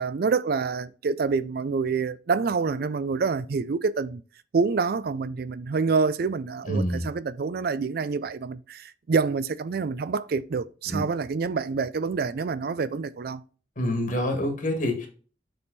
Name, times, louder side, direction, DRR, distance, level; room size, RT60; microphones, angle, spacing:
voice 1, 0.0-4.2 4.5-13.4, right 4 dB, 55° right, 0.4 m, -27 dB
voice 2, 6.7-7.1 10.9-11.0 13.8-15.1, equal, 45° left, 1.6 m, -26 dB
6.8 x 3.6 x 4.0 m
head